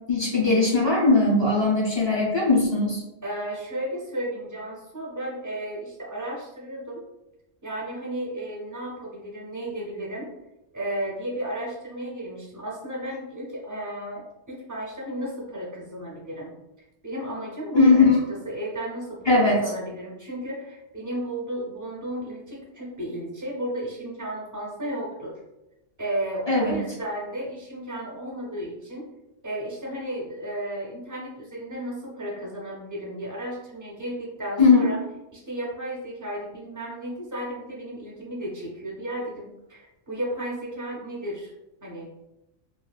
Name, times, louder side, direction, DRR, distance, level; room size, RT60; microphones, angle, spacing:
voice 1, 0.1-3.0 17.7-18.2 19.3-19.6 26.5-26.8 34.6-34.9, left 3 dB, 40° left, -4 dB, 0.4 m, -19 dB
voice 2, 3.2-7.1 7.6-10.3 10.7-16.5 17.0-18.1 18.4-25.4 26.0-29.1 29.4-35.0 35.3-41.5 41.8-42.1, right 1 dB, 30° right, -4 dB, 0.3 m, -33 dB
3.1 x 2.4 x 2.3 m, 0.94 s
omnidirectional pair, 1.3 m